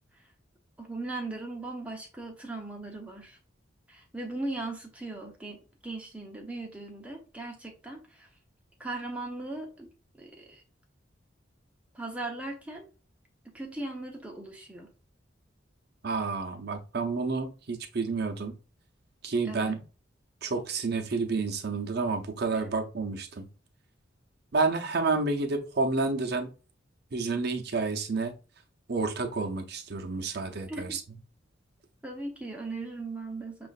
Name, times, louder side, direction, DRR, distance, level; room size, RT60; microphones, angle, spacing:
voice 1, 0.8-3.4 3.9-8.3 8.8-9.9 10.2-10.6 11.9-12.9 13.5-14.9 19.4-19.8 22.5-22.7 30.7-31.0 32.0-33.7, right 2 dB, 5° right, 0.8 m, -38 dB
voice 2, 16.0-18.5 19.2-19.8 20.4-23.5 24.5-26.5 27.1-28.3 28.9-31.0, right 3 dB, 55° right, 0.6 m, -30 dB
6.3 x 2.4 x 2.4 m
head